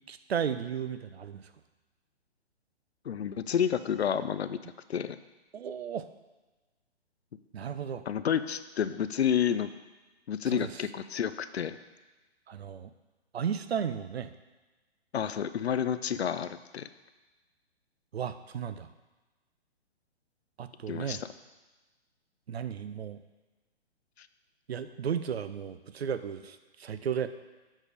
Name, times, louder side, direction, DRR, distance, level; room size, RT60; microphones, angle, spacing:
voice 1, 0.1-1.5 5.5-6.1 7.5-8.0 10.5-10.8 12.5-12.9 13.3-14.3 18.1-18.9 20.6-21.2 22.5-23.2 24.7-27.3, right 7 dB, 70° right, 11 dB, 0.6 m, -34 dB
voice 2, 3.0-4.6 4.9-5.2 8.1-9.7 10.3-11.8 15.1-16.9 20.9-21.3 24.2-24.3, left 8 dB, 75° left, 12 dB, 0.5 m, -30 dB
7.5 x 4.9 x 5.1 m, 1.2 s
figure-of-eight pair, 130°, 32 cm